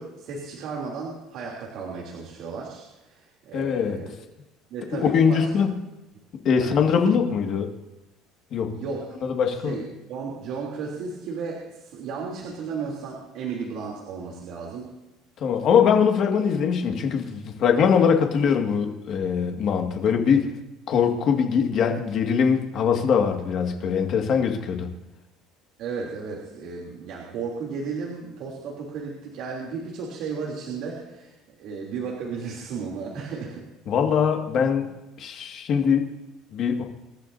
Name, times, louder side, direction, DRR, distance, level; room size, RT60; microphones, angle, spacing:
voice 1, 0.0-4.2 4.7-5.7 6.6-6.7 8.7-9.2 9.5-14.9 25.8-33.7, right 5 dB, 55° right, -3 dB, 3.1 m, -34 dB
voice 2, 3.5-4.0 5.0-5.8 6.4-7.7 8.5-8.7 9.2-9.8 15.4-20.5 20.9-24.9 33.9-34.9 35.2-36.1 36.5-36.8, left 7 dB, 40° left, 3 dB, 2.0 m, -22 dB
26.5 x 12.5 x 2.7 m, 0.99 s
cardioid pair, 160°, 0 cm